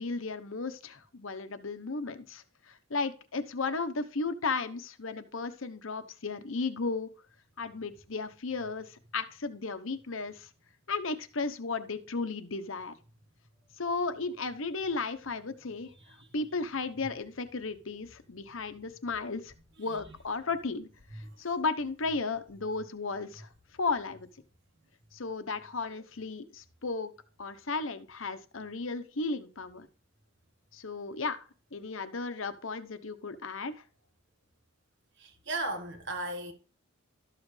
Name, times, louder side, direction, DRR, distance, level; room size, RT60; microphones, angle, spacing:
voice 1, 0.0-7.1 7.6-10.5 10.9-12.9 13.8-15.9 16.3-19.5 19.8-23.5 23.8-24.3 25.1-27.1 27.4-29.9 30.7-31.4 31.7-33.8, left 4 dB, 65° left, 0.9 m, -34 dB
voice 2, 35.2-36.5, right 2 dB, 55° right, 1.6 m, -36 dB
12.5 x 7.4 x 3.3 m
head